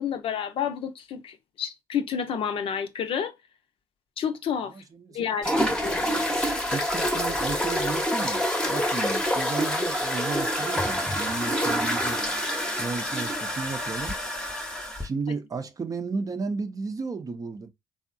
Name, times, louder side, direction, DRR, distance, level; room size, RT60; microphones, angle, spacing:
voice 1, 0.0-3.3 4.2-4.7 5.1-6.1, left 8 dB, 60° left, 0.5 m, -30 dB
voice 2, 4.7-5.3 5.7-6.1 6.7-12.2 12.8-14.2 15.0-17.7, right 4 dB, 35° right, 0.6 m, -34 dB
sound 1, 5.4-15.1, equal, 10° left, 0.8 m, -27 dB
3.5 x 2.0 x 2.5 m
supercardioid pair, 60°, 10 cm